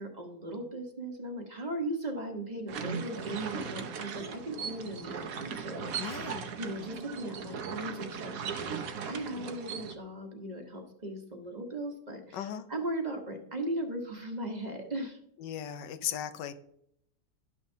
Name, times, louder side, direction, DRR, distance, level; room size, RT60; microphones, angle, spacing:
voice 1, 0.0-8.7 9.0-15.2, right 1 dB, 30° right, 3 dB, 1.1 m, -38 dB
sound 1, 2.7-9.9, right 6 dB, 60° right, 1.1 m, -38 dB
voice 2, 6.0-6.5 12.3-12.7 15.4-16.5, left 9 dB, 85° left, 10 dB, 1.4 m, -37 dB
12.0 x 6.3 x 2.7 m, 0.73 s
omnidirectional pair, 1.8 m